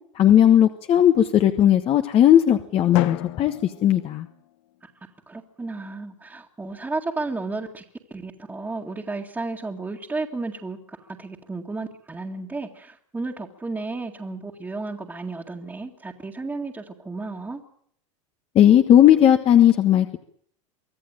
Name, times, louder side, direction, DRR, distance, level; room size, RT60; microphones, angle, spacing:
voice 1, 0.1-4.3 18.5-20.2, left 10 dB, 35° left, 7 dB, 1.4 m, -16 dB
Drum, 2.9-4.9, left 16 dB, 65° left, 1.2 m, -34 dB
voice 2, 4.8-7.8 8.1-17.6, right 3 dB, 10° right, -3 dB, 2.1 m, -33 dB
24.5 x 14.5 x 9.1 m, 0.65 s
supercardioid pair, 115°, 16 cm